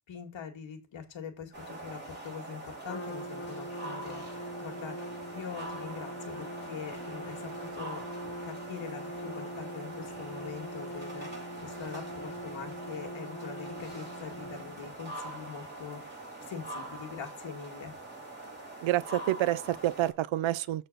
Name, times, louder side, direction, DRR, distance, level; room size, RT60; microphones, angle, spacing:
voice 1, 0.1-5.0 5.3-8.0 8.4-18.0, left 6 dB, 75° left, 2.1 m, -43 dB
sound 1, 1.5-20.1, right 2 dB, 20° right, 4.8 m, -43 dB
Trumpet, 2.8-15.0, equal, 30° left, 2.1 m, -43 dB
voice 2, 18.8-20.9, right 15 dB, 80° right, 0.6 m, -28 dB
7.5 x 4.2 x 6.7 m
cardioid pair, 105°, 47 cm